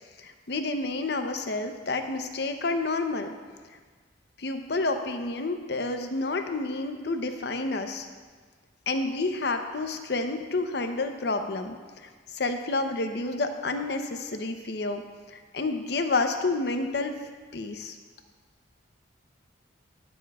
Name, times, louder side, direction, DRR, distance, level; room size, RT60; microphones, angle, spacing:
voice 1, 0.2-3.4 4.4-8.1 8.9-11.8 12.0-12.1 12.3-15.0 15.3-17.2 17.5-18.0, left 3 dB, 60° left, 6 dB, 0.7 m, -29 dB
20.5 x 7.2 x 2.4 m, 1.5 s
head